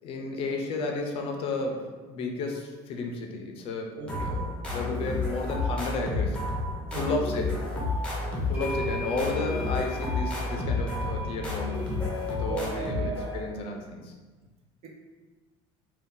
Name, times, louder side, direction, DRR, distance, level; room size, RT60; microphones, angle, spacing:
voice 1, 0.0-6.4 6.9-7.6 8.5-11.9 12.3-14.1, left 3 dB, 50° left, 2 dB, 0.5 m, -33 dB
voice 2, 3.9-4.5 6.9-7.2 12.5-13.1 14.8-14.9, right 3 dB, 50° right, -2 dB, 0.7 m, -37 dB
sound 1, 4.1-13.6, left 2 dB, 10° left, 0.6 m, -30 dB
sound 2, 7.9-8.0 8.5-13.4, equal, 15° right, 1.0 m, -40 dB
2.6 x 2.2 x 3.6 m, 1.3 s
cardioid pair, 140°, 13 cm